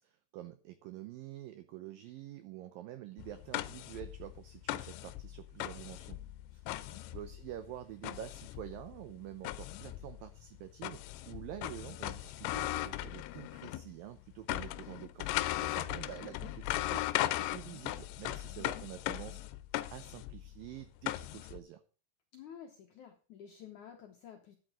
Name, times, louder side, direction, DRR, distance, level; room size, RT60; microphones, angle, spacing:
voice 1, 0.0-6.2 7.1-19.4 19.9-21.8, right 13 dB, 90° right, 11 dB, 2.0 m, -47 dB
sound 1, 3.2-13.9 14.2-21.6, left 16 dB, 90° left, 2.9 m, -38 dB
voice 2, 6.5-7.0 16.0-16.6 18.5-18.9 22.3-24.6, left 9 dB, 75° left, 3 dB, 1.8 m, -52 dB
12.5 x 9.2 x 3.7 m, 0.39 s
omnidirectional pair, 5.0 m